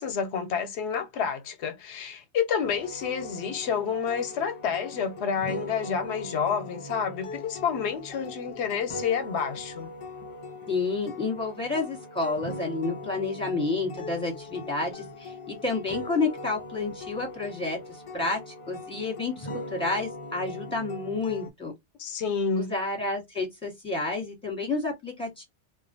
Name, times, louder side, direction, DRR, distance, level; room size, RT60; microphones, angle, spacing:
voice 1, 0.0-9.9 22.0-22.7, left 6 dB, 90° left, 0.9 m, -29 dB
sound 1, 2.6-21.5, left 2 dB, 50° left, 0.3 m, -40 dB
voice 2, 10.7-21.7 22.5-25.4, left 3 dB, 5° left, 1.2 m, -30 dB
2.4 x 2.2 x 2.5 m
omnidirectional pair, 1.1 m